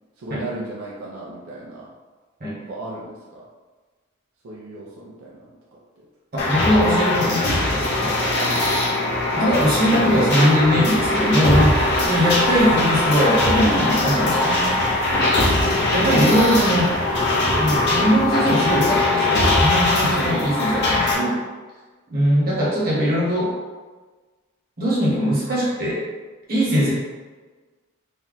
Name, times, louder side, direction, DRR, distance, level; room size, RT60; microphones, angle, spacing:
voice 1, 0.2-1.9 2.7-3.5 4.4-6.1 8.3-8.7 11.8-12.1 20.1-20.4 26.7-26.9, right 2 dB, 85° right, -5 dB, 0.5 m, -35 dB
voice 2, 6.3-8.2 9.3-14.8 15.9-16.9 17.6-21.4 22.1-23.5 24.8-26.0 26.5-26.9, equal, 45° right, -7 dB, 1.1 m, -21 dB
sound 1, 6.4-21.2, left 2 dB, 55° left, 0.7 m, -20 dB
sound 2, 10.8-18.3, equal, 30° right, 0.7 m, -34 dB
2.6 x 2.2 x 3.8 m, 1.3 s
head